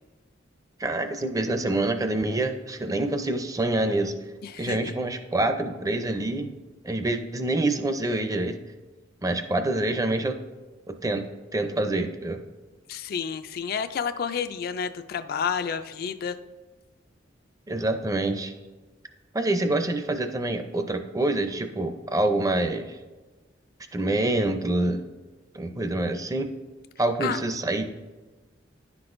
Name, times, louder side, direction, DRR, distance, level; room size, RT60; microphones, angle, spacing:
voice 1, 0.8-4.1 4.6-6.5 6.8-8.6 9.2-10.4 10.9-12.4 17.7-18.5 19.3-23.0 23.9-25.0 25.5-26.5 27.0-27.8, right 2 dB, 20° right, 7 dB, 0.5 m, -26 dB
voice 2, 4.4-4.8 12.9-16.4 27.2-27.4, left 7 dB, 55° left, 10 dB, 0.3 m, -30 dB
10.0 x 6.0 x 2.5 m, 1.2 s
head